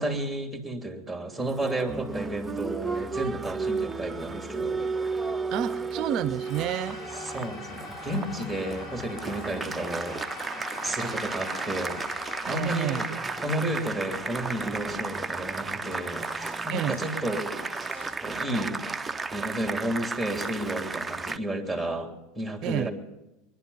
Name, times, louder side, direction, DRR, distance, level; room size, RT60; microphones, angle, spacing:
voice 1, 0.0-4.9 7.2-10.2 10.8-12.0 12.5-13.1 13.4-17.5 18.2-18.8 19.3-22.9, right 1 dB, ahead, 4 dB, 2.9 m, -32 dB
Applause, 1.4-21.4, right 4 dB, 15° right, 0.6 m, -33 dB
voice 2, 5.5-7.0 12.5-13.1 16.7-17.0 22.6-22.9, right 11 dB, 50° right, 14 dB, 0.6 m, -30 dB
sound 1, 6.3-16.8, left 3 dB, 35° left, 4.4 m, -43 dB
sound 2, 8.0-18.1, left 2 dB, 65° left, 3.0 m, -50 dB
22.0 x 11.0 x 5.6 m, 0.97 s
hypercardioid pair, 100°, 0 cm